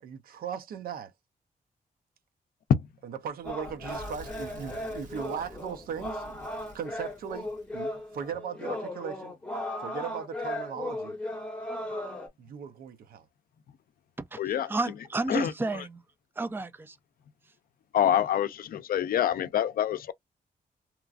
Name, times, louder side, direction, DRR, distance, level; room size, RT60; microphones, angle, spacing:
voice 1, 0.0-1.1 3.0-6.3 6.7-9.3 9.8-11.1 12.4-13.2, right 7 dB, 75° right, 0.6 m, -38 dB
sound 1, 3.4-12.3, left 1 dB, 5° left, 1.1 m, -36 dB
Fire / Explosion, 3.4-8.3, right 1 dB, 55° right, 1.4 m, -49 dB
voice 2, 14.3-16.0 16.4-17.0, right 2 dB, 15° right, 0.4 m, -31 dB
voice 3, 17.9-20.1, left 9 dB, 75° left, 0.5 m, -25 dB
2.9 x 2.3 x 2.4 m
wide cardioid pair, 125°, 15 cm